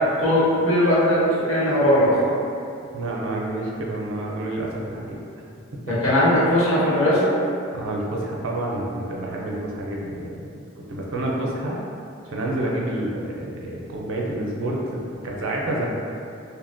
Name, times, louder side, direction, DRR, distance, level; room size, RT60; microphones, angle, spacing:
voice 1, 0.2-2.2 5.9-7.3, equal, 75° left, -10 dB, 1.0 m, -19 dB
voice 2, 2.9-5.2 5.9-6.0 7.7-11.8 12.3-15.9, right 1 dB, 65° right, -3 dB, 0.4 m, -28 dB
2.7 x 2.1 x 2.5 m, 2.5 s
head